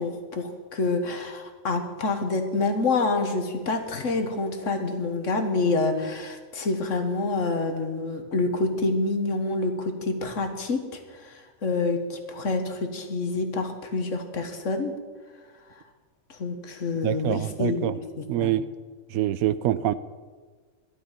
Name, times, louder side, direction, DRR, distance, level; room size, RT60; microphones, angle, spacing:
voice 1, 0.0-14.9 16.3-18.5, left 3 dB, 60° left, 6 dB, 1.6 m, -27 dB
voice 2, 17.0-18.0 18.3-18.6 19.1-19.9, right 12 dB, 80° right, 15 dB, 1.0 m, -25 dB
12.0 x 11.5 x 5.8 m, 1.5 s
omnidirectional pair, 1.5 m